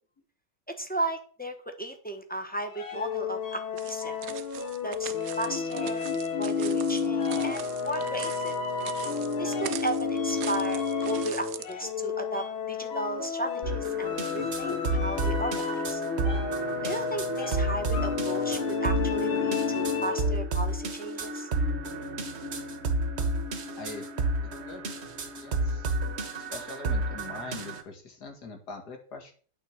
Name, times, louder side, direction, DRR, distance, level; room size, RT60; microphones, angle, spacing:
voice 1, 0.8-4.2 4.8-6.1 6.4-8.6 9.4-16.0 16.8-21.5, right 2 dB, 10° left, 4 dB, 0.6 m, -35 dB
A little bird shows the way, 2.7-20.4, left 5 dB, 80° left, 2.1 m, -31 dB
sound 1, 3.8-11.7, right 11 dB, 85° right, 0.7 m, -42 dB
sound 2, 13.6-27.8, right 2 dB, 40° right, 1.1 m, -31 dB
voice 2, 23.8-24.1 24.4-24.9 25.3-25.8 26.5-29.3, left 3 dB, 50° left, 3 dB, 2.6 m, -42 dB
9.2 x 5.1 x 7.5 m, 0.42 s
omnidirectional pair, 2.3 m